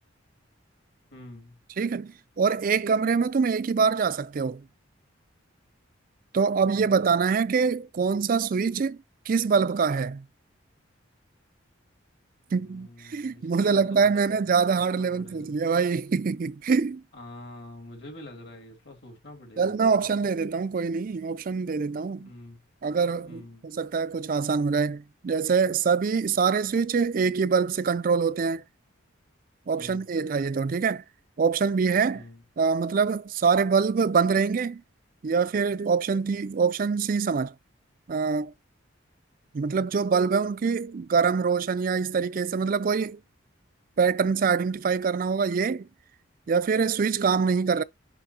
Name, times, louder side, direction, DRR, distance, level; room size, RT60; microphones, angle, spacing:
voice 1, 1.1-1.6 6.6-7.1 12.5-15.5 17.1-20.2 22.2-22.6 23.3-23.7 29.8-30.1 32.1-32.4, left 1 dB, 55° left, 2.9 m, -47 dB
voice 2, 1.8-4.6 6.3-9.0 9.3-10.2 12.5-17.0 19.6-22.3 22.8-28.6 29.7-31.0 31.4-32.2 32.6-34.8 35.2-37.5 38.1-38.5 39.5-43.2 44.0-45.9 46.5-47.8, right 5 dB, 45° right, 0.4 m, -24 dB
7.8 x 5.6 x 2.8 m
head